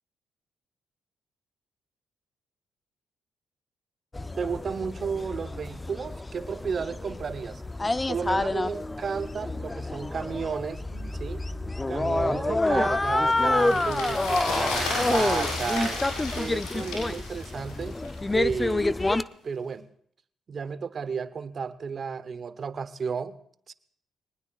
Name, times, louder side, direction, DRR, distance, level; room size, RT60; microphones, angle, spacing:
sound 1, 4.1-19.2, left 2 dB, 20° left, 0.6 m, -28 dB
voice 1, 4.4-7.6 8.1-11.4 11.9-16.0 16.3-18.0 18.3-19.0 19.4-19.9 20.5-23.4 23.7-23.8, right 6 dB, 50° right, 14 dB, 0.9 m, -33 dB
sound 2, 12.8-18.3 18.5-18.6, left 2 dB, 85° left, 7.3 m, -33 dB
23.5 x 19.0 x 2.5 m, 0.63 s
supercardioid pair, 50°, 0 cm